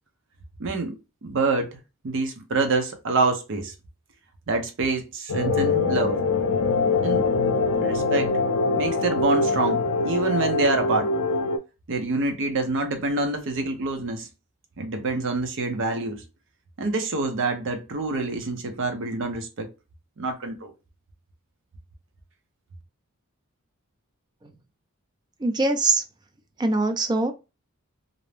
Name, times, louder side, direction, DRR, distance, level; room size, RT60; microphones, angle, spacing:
voice 1, 0.6-1.8 2.0-3.7 4.5-6.2 7.0-7.3 7.7-8.3 8.8-11.1 11.9-14.3 14.8-16.2 16.8-19.7 20.2-20.7, right 3 dB, 60° right, 0.6 m, -26 dB
sound 1, 5.3-11.6, left 3 dB, 85° left, 0.4 m, -23 dB
voice 2, 25.4-26.0 26.6-27.3, right 2 dB, 20° right, 0.3 m, -22 dB
2.5 x 2.0 x 3.1 m
head